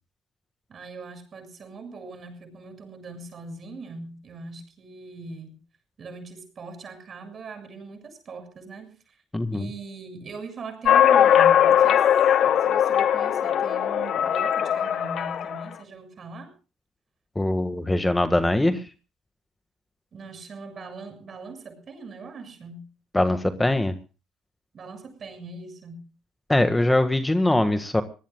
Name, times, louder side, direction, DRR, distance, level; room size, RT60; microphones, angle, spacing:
voice 1, 0.7-5.6 6.0-9.2 9.5-12.1 12.4-16.5 20.1-22.8 24.7-26.1, right 3 dB, 45° right, 6 dB, 7.0 m, -41 dB
voice 2, 9.3-9.7 17.4-18.8 23.1-23.9 26.5-28.0, left 1 dB, 10° left, 9 dB, 1.6 m, -22 dB
sound 1, 10.9-15.6, left 9 dB, 60° left, 1.3 m, -20 dB
25.5 x 19.0 x 2.3 m, 0.34 s
supercardioid pair, 65°, 0 cm